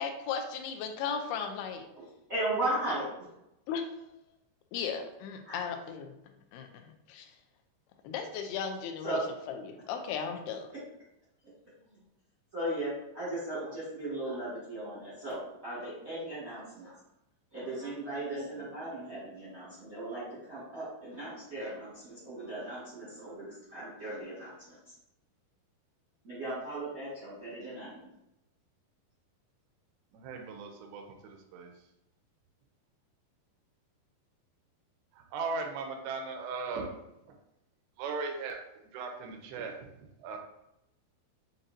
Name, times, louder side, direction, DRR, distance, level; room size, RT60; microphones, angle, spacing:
voice 1, 0.0-1.9 3.7-3.9 4.7-6.1 6.5-7.3 8.0-9.2 9.5-10.7, left 6 dB, 80° left, 5 dB, 2.3 m, -36 dB
voice 2, 2.3-3.1 5.5-5.6 9.0-9.3 11.4-12.0 12.5-17.0 17.5-24.8 26.2-28.1, right 1 dB, 60° right, -9 dB, 0.8 m, -37 dB
voice 3, 30.1-31.7 35.3-36.9 38.0-38.6 38.9-40.4, right 4 dB, 85° right, 3 dB, 2.7 m, -38 dB
7.4 x 2.6 x 2.7 m, 0.85 s
omnidirectional pair, 4.7 m